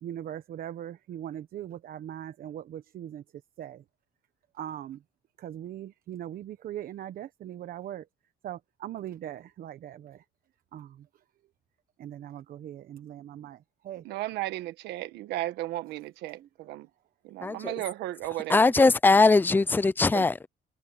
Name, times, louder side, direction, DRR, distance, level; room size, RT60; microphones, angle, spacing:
voice 1, 0.0-3.2 3.6-3.8 4.5-5.0 5.4-8.1 8.4-10.2 10.7-11.1 12.0-14.0, right 11 dB, 60° right, 1.2 m, -40 dB
voice 2, 14.0-16.9 17.2-18.9 20.1-20.3, right 16 dB, 85° right, 1.4 m, -35 dB
voice 3, 18.5-20.5, left 3 dB, 10° left, 0.5 m, -20 dB
cardioid pair, 110°, 17 cm